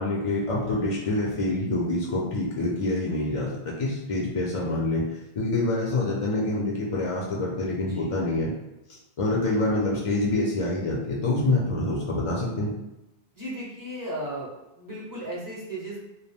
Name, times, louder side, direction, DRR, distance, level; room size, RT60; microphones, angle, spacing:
voice 1, 0.0-3.5 3.8-5.0 5.4-8.5 9.2-12.7, left 2 dB, 50° left, -3 dB, 0.4 m, -26 dB
voice 2, 13.3-14.5 14.8-16.0, right 1 dB, 25° right, -5 dB, 0.6 m, -35 dB
2.3 x 2.0 x 3.4 m, 0.91 s
omnidirectional pair, 1.1 m